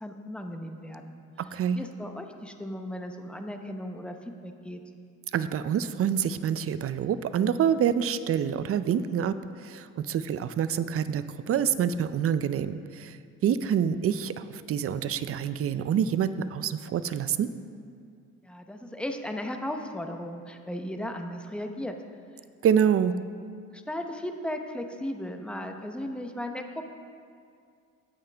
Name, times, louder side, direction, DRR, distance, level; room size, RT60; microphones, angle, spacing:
voice 1, 0.0-1.2 1.7-4.8 18.4-22.0 23.7-26.9, left 1 dB, 5° left, 5 dB, 0.7 m, -36 dB
voice 2, 1.4-1.8 5.3-9.3 9.6-13.2 13.4-17.5 22.6-23.1, right 8 dB, 50° right, 13 dB, 0.5 m, -26 dB
17.0 x 5.7 x 3.4 m, 2.3 s
cardioid pair, 90°, 30 cm